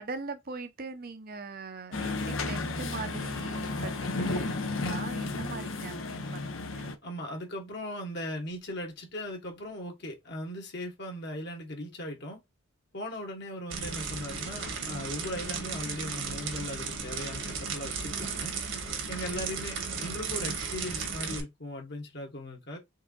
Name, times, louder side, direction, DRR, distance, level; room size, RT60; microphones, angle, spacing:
voice 1, 0.0-6.9 19.9-20.0 20.3-20.5, right 4 dB, 45° right, 0.8 m, -41 dB
sound 1, 1.9-6.9, left 3 dB, 70° left, 0.8 m, -33 dB
voice 2, 7.0-12.4 12.9-18.5 18.8-22.8, left 1 dB, 55° left, 1.6 m, -38 dB
sound 2, 13.7-21.4, right 5 dB, 70° right, 1.6 m, -35 dB
4.7 x 3.5 x 2.5 m
head